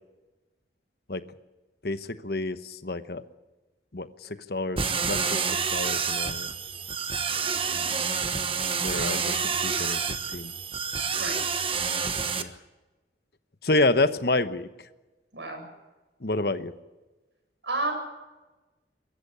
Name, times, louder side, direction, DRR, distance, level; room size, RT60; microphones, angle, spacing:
voice 1, 1.8-3.2 3.9-6.5 8.8-10.0 10.3-10.5 12.4-12.5 13.6-14.7 16.2-16.7, left 2 dB, 60° left, 11 dB, 1.1 m, -28 dB
sound 1, 4.8-12.4, right 6 dB, 30° right, 1.2 m, -28 dB
voice 2, 11.1-11.5 15.3-15.6 17.6-17.9, right 2 dB, 80° right, 3 dB, 7.9 m, -32 dB
23.5 x 14.0 x 9.8 m, 1.1 s
head